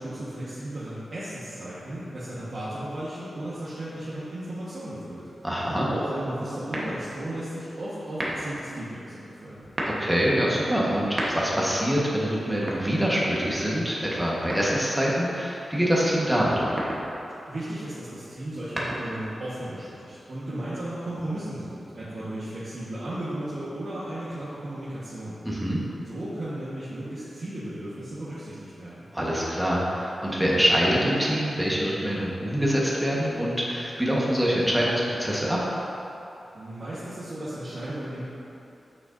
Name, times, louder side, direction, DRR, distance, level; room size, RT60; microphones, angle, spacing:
voice 1, 0.0-5.3 5.6-9.6 17.5-25.4 26.0-29.0 36.5-38.2, right 1 dB, 60° right, -11 dB, 1.3 m, -35 dB
voice 2, 5.4-5.9 9.8-16.7 25.4-25.8 29.1-35.6, equal, 10° right, -5 dB, 1.3 m, -25 dB
sound 1, 6.7-7.3 8.1-8.6 9.5-10.1 10.9-11.7 12.5-13.4 14.5-15.1 16.5-17.1 18.4-19.3, right 1 dB, 30° right, 1.1 m, -33 dB
8.0 x 6.2 x 2.6 m, 2.9 s
wide cardioid pair, 95°, 0 cm